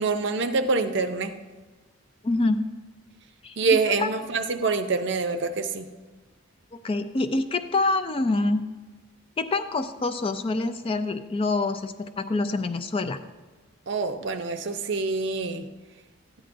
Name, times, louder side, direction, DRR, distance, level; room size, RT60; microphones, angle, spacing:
voice 1, 0.0-1.3 3.6-5.8 13.9-15.6, right 4 dB, 55° right, 8 dB, 0.6 m, -25 dB
voice 2, 2.2-2.6 3.4-4.1 6.7-8.6 9.4-13.2, left 2 dB, 25° left, 9 dB, 0.3 m, -26 dB
13.5 x 9.7 x 2.6 m, 1.3 s
head